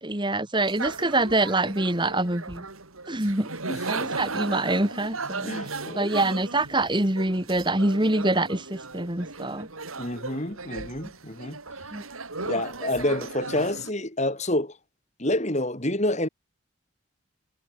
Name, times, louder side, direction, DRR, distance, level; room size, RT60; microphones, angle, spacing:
voice 1, 0.0-2.6 3.1-3.5 3.9-9.7 11.9-12.0, right 2 dB, 20° right, 2.2 m, -25 dB
sound 1, 0.6-13.9, right 3 dB, 90° right, 4.6 m, -36 dB
voice 2, 5.4-6.1 10.0-11.6 12.5-14.8 15.2-16.3, left 1 dB, 35° left, 4.2 m, -28 dB
head